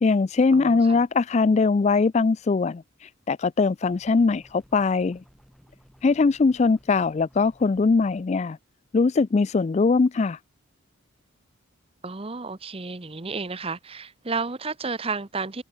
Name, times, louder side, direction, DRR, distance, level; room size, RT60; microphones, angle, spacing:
voice 1, 0.0-5.2 6.0-8.6 8.9-10.4, left 4 dB, 30° left, 0.3 m, -21 dB
voice 2, 0.5-1.0 12.0-15.6, right 4 dB, 25° right, 0.9 m, -32 dB
sound 1, 3.8-8.2, equal, ahead, 2.9 m, -56 dB
head